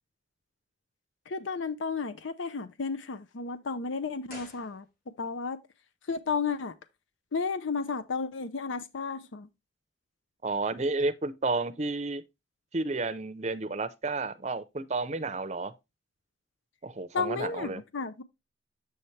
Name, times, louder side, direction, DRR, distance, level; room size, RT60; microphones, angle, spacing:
voice 1, 1.3-4.8 5.2-5.6 6.1-6.7 7.3-9.5 17.1-18.2, left 4 dB, 85° left, 0.6 m, -33 dB
sound 1, 4.2-5.4 5.6-5.7, left 1 dB, 45° left, 3.8 m, -50 dB
voice 2, 10.4-12.2 12.7-15.7 16.8-17.8, right 3 dB, 35° right, 0.6 m, -31 dB
7.8 x 5.6 x 3.2 m
head